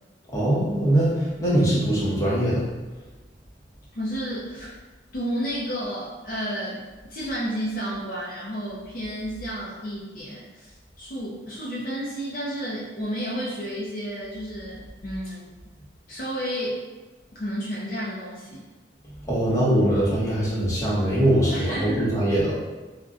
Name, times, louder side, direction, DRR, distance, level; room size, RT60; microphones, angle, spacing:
voice 1, 0.3-2.6 19.3-22.5, right 1 dB, 15° left, -8 dB, 0.8 m, -22 dB
voice 2, 3.9-4.7 5.1-6.8 7.1-15.5 16.1-16.8 17.4-18.6 21.5-22.1, equal, 45° left, -6 dB, 0.5 m, -31 dB
2.4 x 2.1 x 3.6 m, 1.2 s
head